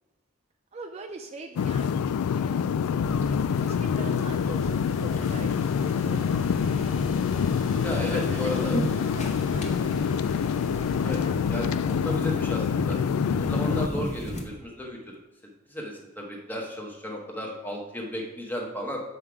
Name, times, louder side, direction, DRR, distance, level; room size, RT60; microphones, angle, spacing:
voice 1, 0.7-4.7 5.0-5.7 6.0-6.9 7.7-8.7 9.1-9.7, right 3 dB, 30° right, 3 dB, 0.4 m, -43 dB
sound 1, 1.6-13.9, left 7 dB, 90° left, 0.3 m, -26 dB
sound 2, 3.0-14.4, equal, 30° left, 0.9 m, -36 dB
sound 3, 3.2-12.9, left 1 dB, 60° left, 1.0 m, -43 dB
voice 2, 7.8-8.8 11.0-11.2 11.5-13.0 13.4-15.2 15.7-19.0, equal, 10° left, 0 dB, 1.1 m, -34 dB
7.2 x 5.6 x 4.8 m, 1.1 s
head